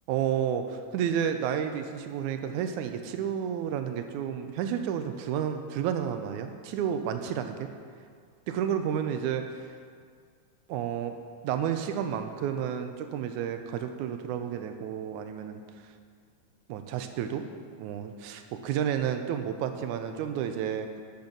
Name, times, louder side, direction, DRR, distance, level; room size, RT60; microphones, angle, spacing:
voice 1, 0.1-7.7 8.5-9.5 10.7-11.2 11.4-15.6 16.7-17.4 17.8-20.9, right 9 dB, 80° right, 7 dB, 1.9 m, -31 dB
10.5 x 6.9 x 5.2 m, 2.1 s
omnidirectional pair, 3.8 m